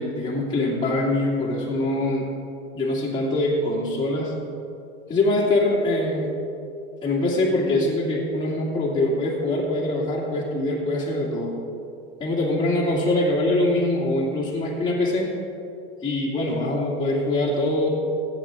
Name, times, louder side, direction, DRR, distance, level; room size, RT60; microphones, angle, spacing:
voice 1, 0.0-2.3 2.7-4.4 5.1-6.3 7.0-11.6 12.2-15.3 16.0-17.9, left 2 dB, 15° left, -7 dB, 2.6 m, -23 dB
17.5 x 8.8 x 3.8 m, 2.5 s
hypercardioid pair, 115°, 34 cm